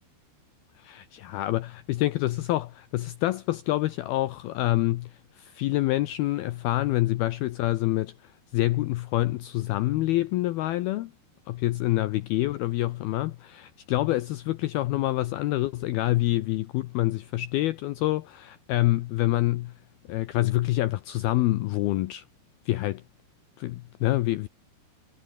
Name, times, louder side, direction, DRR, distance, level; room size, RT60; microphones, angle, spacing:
voice 1, 0.8-8.1 8.5-11.1 11.5-19.7 20.1-22.2 22.7-23.0 23.6-24.5, left 17 dB, 80° left, 2.2 m, -26 dB
omnidirectional pair, 5.3 m